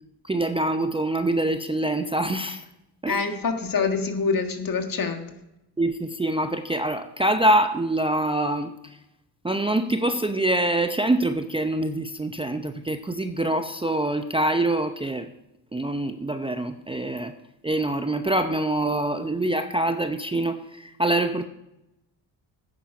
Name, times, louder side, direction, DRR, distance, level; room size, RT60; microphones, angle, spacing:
voice 1, 0.2-2.6 3.0-3.3 5.8-8.7 9.4-15.3 15.7-17.3 17.6-21.4, right 1 dB, 10° right, 8 dB, 0.7 m, -25 dB
voice 2, 3.1-5.3, left 5 dB, 45° left, 6 dB, 1.7 m, -25 dB
9.1 x 9.1 x 5.9 m, 0.90 s
supercardioid pair, 55°, 47 cm